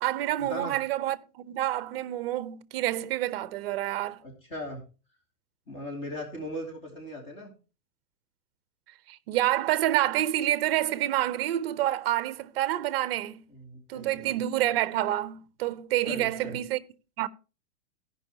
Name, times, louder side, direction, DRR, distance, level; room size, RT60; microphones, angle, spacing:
voice 1, 0.0-4.2 9.1-13.4 13.9-16.8 17.2-17.3, right 14 dB, 40° right, 0.7 m, -28 dB
voice 2, 4.2-4.8 5.7-7.5 13.5-14.4 16.1-16.6, left 1 dB, 25° left, 2.9 m, -38 dB
15.5 x 5.5 x 4.4 m
hypercardioid pair, 155°, 44 cm